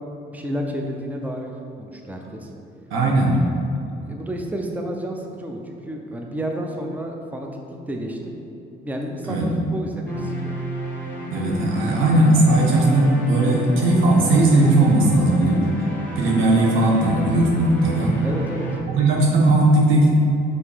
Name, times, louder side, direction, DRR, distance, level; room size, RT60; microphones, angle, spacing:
voice 1, 0.0-2.5 4.1-8.4 8.8-10.6 18.2-18.7, right 1 dB, 10° right, 2 dB, 0.6 m, -31 dB
voice 2, 2.9-3.4 9.3-9.5 11.3-15.7 16.2-18.1 18.9-20.1, right 2 dB, 90° right, -2 dB, 1.2 m, -17 dB
sound 1, 10.1-18.8, equal, 10° left, 1.5 m, -31 dB
5.5 x 4.0 x 5.0 m, 2.7 s
cardioid pair, 90°, 20 cm